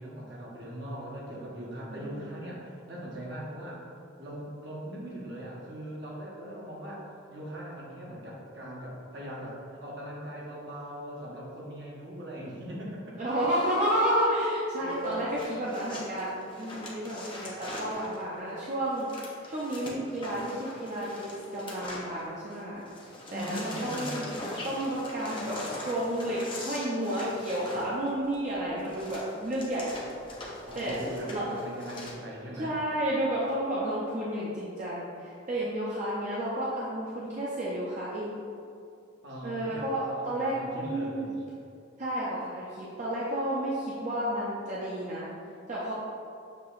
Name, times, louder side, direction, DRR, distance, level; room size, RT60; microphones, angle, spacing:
voice 1, 0.0-3.9 4.2-13.1 14.8-15.3 16.1-16.2 23.3-24.2 30.6-32.7 39.2-41.4, equal, 65° right, -5 dB, 1.0 m, -40 dB
voice 2, 1.9-2.4 13.2-22.8 23.3-30.0 30.7-31.6 32.6-38.4 39.4-41.3 42.0-45.3 45.7-45.9, right 1 dB, 40° right, -7 dB, 0.5 m, -31 dB
sound 1, 14.9-22.6 22.9-32.1, left 1 dB, 25° left, 0.7 m, -42 dB
6.7 x 2.9 x 2.4 m, 2.5 s
head